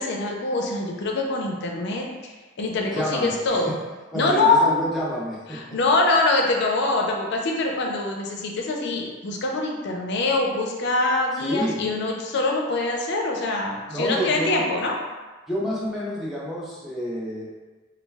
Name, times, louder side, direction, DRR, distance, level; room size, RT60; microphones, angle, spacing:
voice 1, 0.0-3.8 4.1-4.7 5.5-15.0, left 2 dB, 60° left, 0 dB, 0.4 m, -24 dB
voice 2, 2.9-3.4 3.7-3.8 4.1-5.8 11.4-11.9 13.9-14.6 15.5-17.5, equal, ahead, -7 dB, 0.5 m, -28 dB
2.3 x 2.1 x 3.3 m, 1.2 s
head